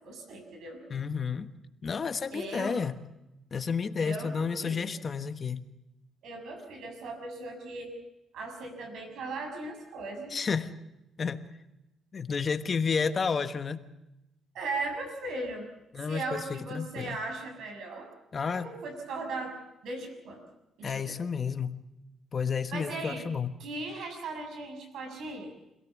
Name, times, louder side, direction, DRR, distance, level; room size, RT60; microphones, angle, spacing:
voice 1, 0.0-0.8 2.3-2.8 4.0-4.9 6.2-8.0 8.3-10.4 14.5-15.7 16.1-18.1 18.5-20.4 20.8-21.2 22.7-23.2 23.6-25.5, right 2 dB, 75° right, 5 dB, 6.2 m, -38 dB
voice 2, 0.9-1.5 1.8-3.0 3.5-5.6 10.3-10.7 11.2-11.4 12.1-13.8 15.9-17.2 18.3-18.7 20.8-21.8 22.3-23.5, left 5 dB, 40° left, 10 dB, 1.3 m, -31 dB
26.0 x 17.5 x 7.3 m, 0.90 s
cardioid pair, 90°, 0 cm